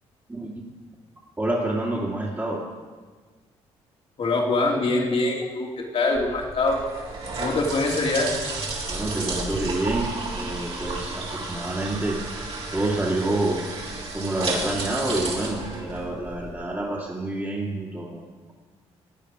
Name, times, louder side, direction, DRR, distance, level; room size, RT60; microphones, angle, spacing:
voice 1, 1.4-2.6 8.9-12.2 12.7-13.7 14.1-18.5, right 1 dB, 15° right, -4 dB, 2.4 m, -28 dB
voice 2, 4.2-6.8 7.4-8.4, left 2 dB, 55° left, -1 dB, 2.9 m, -24 dB
sound 1, 6.1-16.5, right 3 dB, 55° right, 3.4 m, -32 dB
16.5 x 9.0 x 5.0 m, 1.4 s
supercardioid pair, 65°, 12 cm